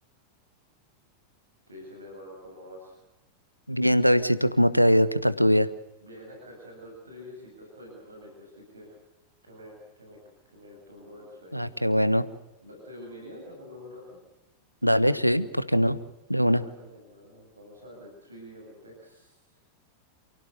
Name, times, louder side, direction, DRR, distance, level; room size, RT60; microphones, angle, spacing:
voice 1, 1.7-3.0 6.0-9.0 9.4-10.2 10.5-11.7 12.6-14.2 16.4-19.3, left 1 dB, 75° right, 0 dB, 7.8 m, -46 dB
voice 2, 3.7-5.7 11.5-12.3 14.8-16.0 16.3-16.6, equal, 90° left, 15 dB, 1.2 m, -22 dB
28.5 x 17.0 x 8.2 m, 0.98 s
figure-of-eight pair, 90°, 0 cm